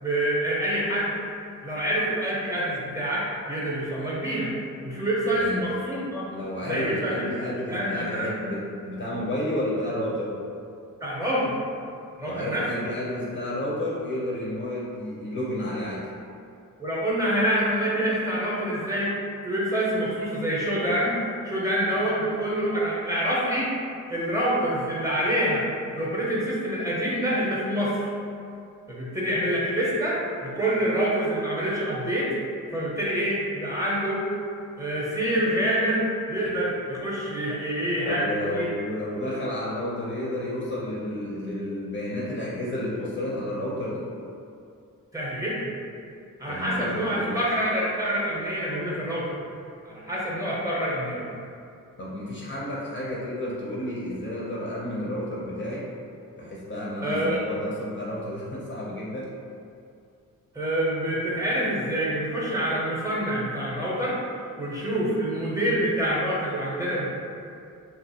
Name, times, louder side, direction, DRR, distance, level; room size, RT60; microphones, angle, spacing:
voice 1, 0.0-1.1 1.6-4.6 4.8-6.2 6.7-7.1 7.7-8.3 11.0-11.5 12.2-12.6 16.8-19.2 19.4-21.2 21.4-23.7 24.1-28.1 28.9-32.3 32.7-34.2 34.8-38.2 38.5-38.7 45.1-45.7 46.4-49.3 49.9-51.2 57.0-57.4 60.5-64.2 64.6-67.1, right 1 dB, 10° right, -6 dB, 0.6 m, -26 dB
voice 2, 5.3-5.8 6.3-10.3 12.2-16.1 21.9-22.1 38.0-44.1 46.4-47.4 52.0-55.9 56.4-59.3, left 1 dB, 35° left, -6 dB, 0.4 m, -31 dB
2.9 x 2.4 x 2.7 m, 2.5 s
cardioid pair, 110°, 34 cm